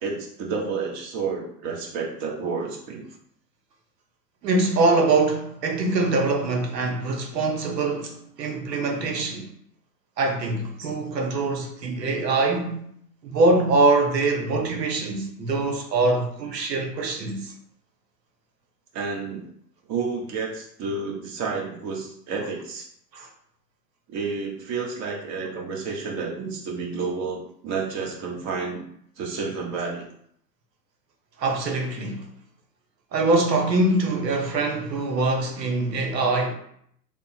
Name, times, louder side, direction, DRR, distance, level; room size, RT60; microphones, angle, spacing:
voice 1, 0.0-3.1 10.8-10.9 18.9-19.4 19.9-22.9 24.1-28.8 29.2-30.0, right 4 dB, 35° right, 1.1 m, -30 dB
voice 2, 4.4-9.5 10.2-12.8 13.2-17.5 23.1-23.3 31.4-32.3 33.1-36.5, right 2 dB, 80° right, 0.9 m, -23 dB
3.5 x 2.1 x 4.3 m
hypercardioid pair, 100°, 49 cm